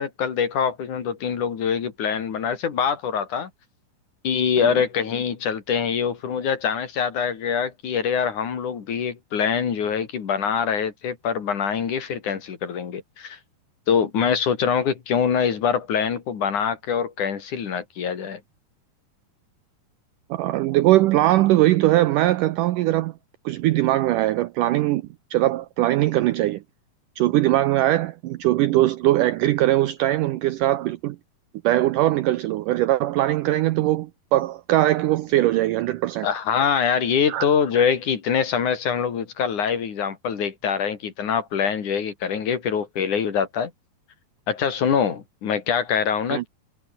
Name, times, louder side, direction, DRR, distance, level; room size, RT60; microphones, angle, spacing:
voice 1, 0.0-3.5 4.2-13.4 13.9-18.4 36.2-43.7 44.5-46.5, left 7 dB, 55° left, 3.8 m, -24 dB
voice 2, 20.3-23.1 23.5-25.0 25.3-26.6 27.2-31.2 31.6-36.3 37.3-37.5 46.3-46.4, right 15 dB, 80° right, 1.9 m, -21 dB
omnidirectional pair, 4.5 m